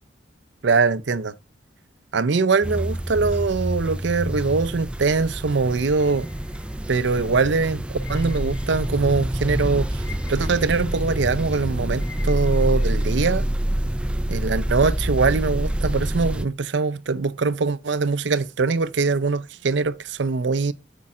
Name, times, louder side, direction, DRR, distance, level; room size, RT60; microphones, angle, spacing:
voice 1, 0.6-1.3 2.1-6.3 6.9-10.0 10.3-13.4 14.3-20.7, right 4 dB, 70° right, 0.5 m, -22 dB
sound 1, 2.6-16.5, right 1 dB, 5° right, 0.3 m, -26 dB
sound 2, 6.0-7.3 8.0-9.3 9.6-13.3, left 6 dB, 70° left, 2.5 m, -48 dB
8.5 x 5.3 x 3.6 m
head